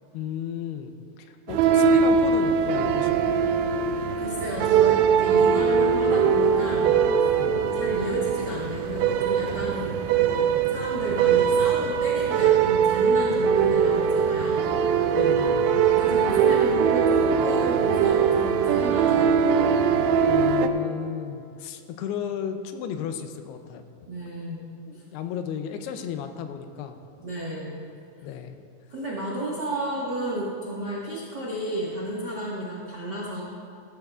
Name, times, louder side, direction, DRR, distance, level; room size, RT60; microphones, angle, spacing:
voice 1, 0.1-3.5 7.4-7.6 15.2-15.7 20.3-23.8 24.9-27.0 28.2-28.6, left 8 dB, 85° left, 7 dB, 2.7 m, -34 dB
sound 1, 1.5-20.7, right 6 dB, 80° right, 2.4 m, -21 dB
voice 2, 4.2-14.7 15.7-19.6 24.1-24.6 24.9-25.0 27.2-27.8 28.9-33.4, right 1 dB, 65° right, -6 dB, 1.0 m, -32 dB
16.5 x 13.0 x 2.4 m, 2.5 s
omnidirectional pair, 4.6 m